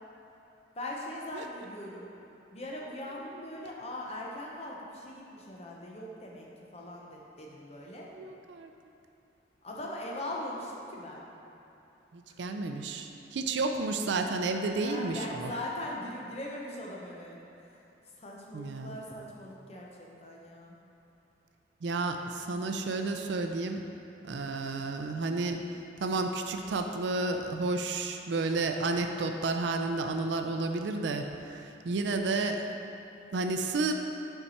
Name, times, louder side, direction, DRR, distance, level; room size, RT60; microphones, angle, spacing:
voice 1, 0.7-2.1 2.5-6.5 6.7-8.1 9.6-11.3 12.3-12.5 14.7-17.8 18.2-20.8, left 1 dB, 35° left, -2 dB, 0.7 m, -40 dB
voice 2, 8.1-8.7 12.1-15.5 18.5-19.0 21.8-23.8 24.2-25.6 26.0-32.7 33.3-33.9, right 3 dB, 70° right, 5 dB, 0.4 m, -31 dB
5.7 x 4.6 x 4.1 m, 2.9 s
head